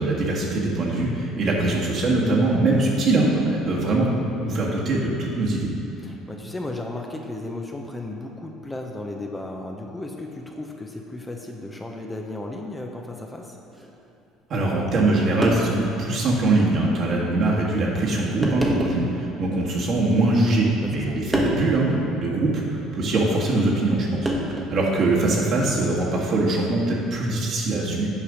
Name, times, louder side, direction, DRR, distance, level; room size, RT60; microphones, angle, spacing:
voice 1, 0.0-4.1 4.4-5.7 14.5-28.1, right 2 dB, 55° right, -3 dB, 1.6 m, -22 dB
voice 2, 6.0-13.6 20.8-21.2, left 2 dB, 15° left, 1 dB, 0.8 m, -35 dB
sound 1, 13.7-13.9 15.0-15.1 15.4-15.9 16.5-16.6 17.5-17.7 18.4-19.1 20.0-20.6 21.3-21.7 23.2-23.4 24.3-24.8 26.4-26.7, equal, 10° right, 1.2 m, -27 dB
7.3 x 4.9 x 5.1 m, 2.9 s
hypercardioid pair, 70°, 0 cm